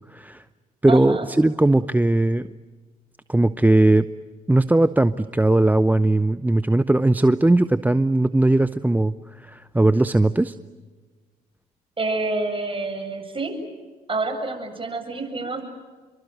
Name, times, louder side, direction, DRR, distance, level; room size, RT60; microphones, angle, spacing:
voice 1, 0.1-0.4 0.8-2.5 3.3-4.1 4.5-9.1 9.4-10.6, right 2 dB, 10° right, 14 dB, 0.7 m, -18 dB
voice 2, 0.9-1.3 12.0-13.5 14.1-15.6, right 3 dB, 30° right, 4 dB, 7.6 m, -27 dB
29.5 x 23.5 x 7.9 m, 1.4 s
hypercardioid pair, 55°, 19 cm